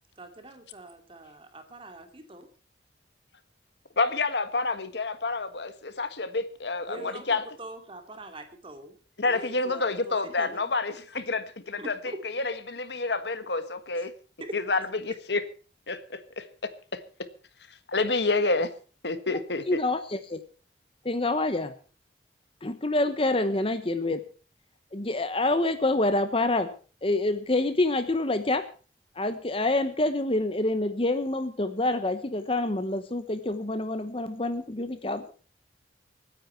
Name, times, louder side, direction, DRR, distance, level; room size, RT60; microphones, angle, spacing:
voice 1, 0.2-2.5 6.9-9.0 9.2-10.8 11.8-12.2 14.0-14.1 14.4-14.9, right 1 dB, 30° right, 6 dB, 2.6 m, -43 dB
voice 2, 4.0-7.4 9.2-11.9 12.3-14.1 14.5-15.4 15.9-16.4 16.9-17.0 17.9-18.7 19.0-19.8, left 3 dB, 70° left, 11 dB, 1.5 m, -28 dB
voice 3, 19.7-20.4 21.0-21.7 22.6-24.2 24.9-26.7 27.0-28.7 29.2-35.3, left 2 dB, 30° left, 11 dB, 1.0 m, -27 dB
25.5 x 9.8 x 4.5 m, 0.37 s
head